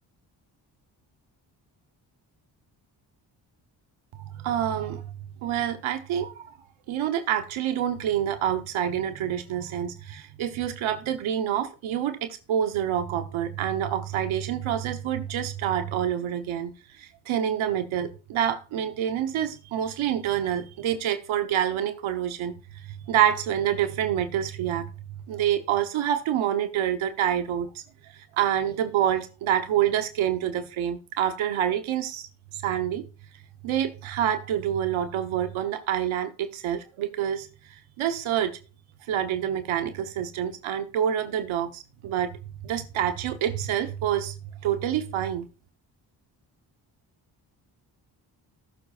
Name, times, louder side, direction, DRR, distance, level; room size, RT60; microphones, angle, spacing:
voice 1, 4.1-5.1 5.4-6.6 6.9-16.7 17.0-22.5 22.9-24.9 25.3-27.8 28.1-32.3 32.5-33.0 33.6-37.5 38.0-38.6 39.1-44.3 44.6-45.5, right 10 dB, 85° right, 1.1 m, -27 dB
18.0 x 7.0 x 2.5 m
supercardioid pair, 55°, 47 cm